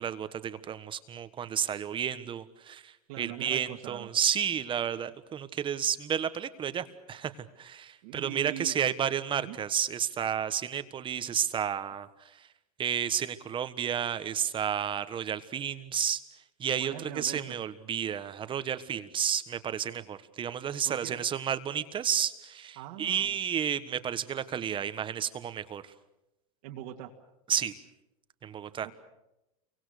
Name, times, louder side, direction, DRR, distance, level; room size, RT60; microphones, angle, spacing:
voice 1, 0.0-12.5 12.8-25.9 27.5-27.7 28.4-28.9, right 9 dB, 25° right, 12 dB, 1.4 m, -32 dB
voice 2, 3.1-4.1 8.0-8.7 9.4-9.6 16.8-17.5 20.8-21.2 22.8-23.3 26.6-27.1 28.8-28.9, right 11 dB, 65° right, 0 dB, 2.4 m, -41 dB
29.0 x 24.0 x 6.7 m, 0.92 s
supercardioid pair, 125°, 19 cm